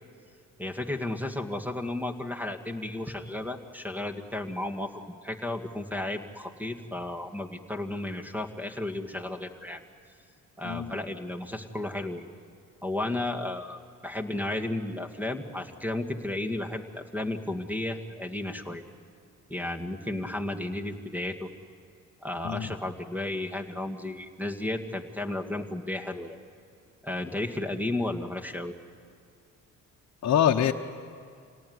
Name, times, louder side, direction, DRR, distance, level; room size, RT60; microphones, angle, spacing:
voice 1, 0.6-9.8 10.6-12.2 12.8-18.8 19.5-21.5 22.2-26.4 27.0-28.7, left 1 dB, 5° right, 6 dB, 2.0 m, -33 dB
voice 2, 10.6-11.0 22.4-22.7 30.2-30.7, left 9 dB, 60° left, 1 dB, 1.1 m, -24 dB
27.0 x 18.5 x 9.5 m, 2.2 s
cardioid pair, 90°, 30 cm